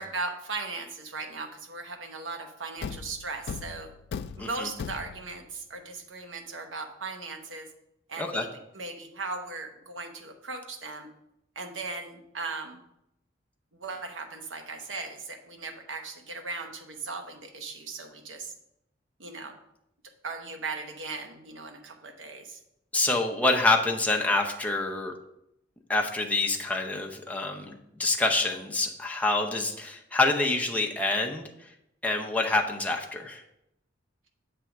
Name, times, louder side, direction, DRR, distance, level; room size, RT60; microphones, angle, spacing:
voice 1, 0.0-3.9 4.4-7.7 8.1-8.5 8.7-11.1 11.6-12.8 13.7-18.5 19.2-19.6 20.2-22.6, right 3 dB, 75° right, 5 dB, 0.9 m, -38 dB
Thump thud, 2.8-5.5, left 6 dB, 60° left, 0.3 m, -38 dB
voice 2, 22.9-25.1 25.9-31.5 32.0-33.4, left 2 dB, 10° left, 1 dB, 0.7 m, -26 dB
7.5 x 3.4 x 5.8 m, 0.81 s
head